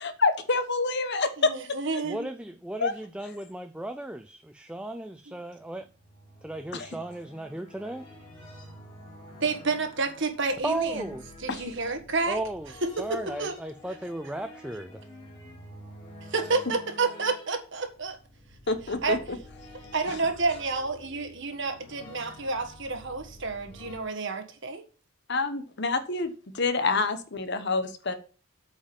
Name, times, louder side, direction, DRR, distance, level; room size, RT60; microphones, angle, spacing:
voice 1, 0.0-1.5 2.8-2.9 6.7-6.9 11.5-11.7 18.7-19.4 20.1-20.2 25.3-28.1, left 3 dB, 50° left, 1.1 m, -27 dB
voice 2, 1.4-2.3 5.3-5.4 9.4-11.1 11.4-12.4 12.8-13.5 16.3-18.2 18.7-18.8 19.0-19.2 19.9-24.8, right 3 dB, 55° right, 1.6 m, -30 dB
voice 3, 2.0-5.9 6.4-8.0 10.6-11.3 12.3-12.7 13.0-15.0, right 1 dB, 5° right, 0.4 m, -35 dB
sound 1, 5.8-24.0, left 1 dB, 25° left, 3.5 m, -49 dB
8.6 x 5.2 x 7.0 m
head